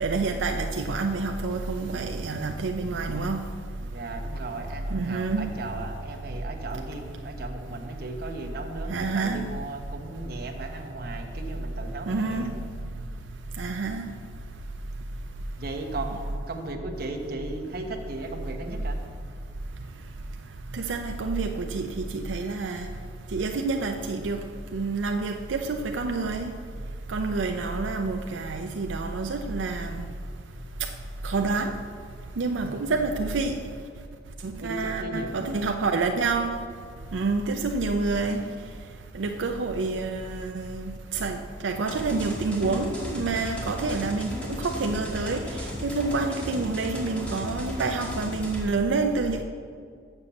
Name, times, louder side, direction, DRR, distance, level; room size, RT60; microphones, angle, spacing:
voice 1, 0.0-3.4 4.9-5.5 8.9-9.4 12.1-12.5 13.6-14.1 20.7-22.9 23.3-24.4 24.7-26.5 27.1-30.0 31.2-31.7 32.4-33.5 34.4-36.6 37.1-38.5 39.1-41.4 41.6-44.3 44.6-45.4 45.8-49.4, right 3 dB, 90° right, 5 dB, 0.5 m, -28 dB
voice 2, 3.9-12.6 15.6-19.0 32.6-32.7 34.6-35.6, right 2 dB, 55° right, 3 dB, 1.0 m, -36 dB
sound 1, 41.9-48.6, left 1 dB, 5° left, 1.5 m, -35 dB
6.9 x 6.7 x 7.1 m, 2.2 s
head